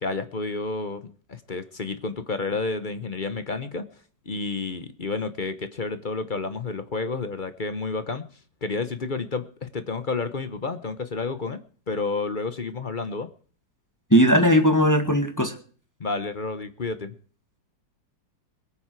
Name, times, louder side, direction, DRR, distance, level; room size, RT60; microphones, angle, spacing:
voice 1, 0.0-3.9 4.3-8.3 8.6-11.6 11.9-13.3 16.0-17.1, left 3 dB, 40° left, 12 dB, 0.8 m, -30 dB
voice 2, 14.1-15.5, equal, 10° left, 5 dB, 1.5 m, -18 dB
21.0 x 9.2 x 4.6 m, 0.43 s
omnidirectional pair, 2.0 m